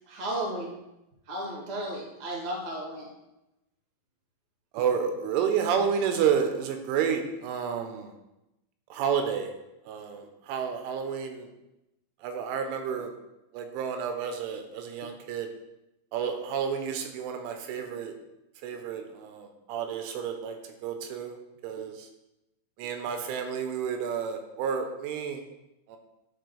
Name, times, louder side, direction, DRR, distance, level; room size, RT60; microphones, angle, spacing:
voice 1, 0.1-0.7 1.3-3.1, right 1 dB, 65° right, -4 dB, 0.9 m, -34 dB
voice 2, 4.7-8.1 8.9-9.5 9.9-11.5 12.2-13.1 13.5-15.5 16.1-18.1 18.6-20.6 20.8-21.4 21.6-22.1 22.8-25.4 25.9-26.0, right 7 dB, 90° right, 5 dB, 3.2 m, -30 dB
13.0 x 4.4 x 3.2 m, 0.92 s
omnidirectional pair, 5.6 m